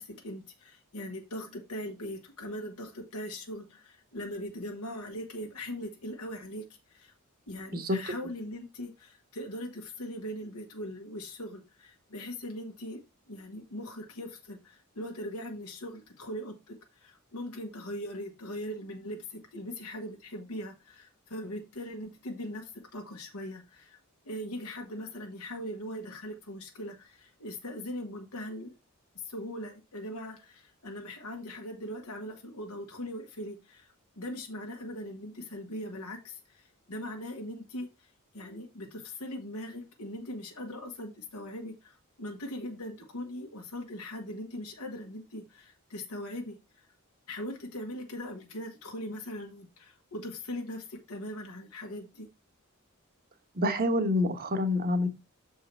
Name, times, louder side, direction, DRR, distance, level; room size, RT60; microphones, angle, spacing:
voice 1, 0.0-7.1 7.5-24.0 24.2-28.7 29.2-38.1 38.3-46.6 47.3-52.3, left 1 dB, 85° left, 1.4 m, -40 dB
voice 2, 53.5-55.1, left 1 dB, 45° right, 1.2 m, -27 dB
6.8 x 4.7 x 4.5 m
head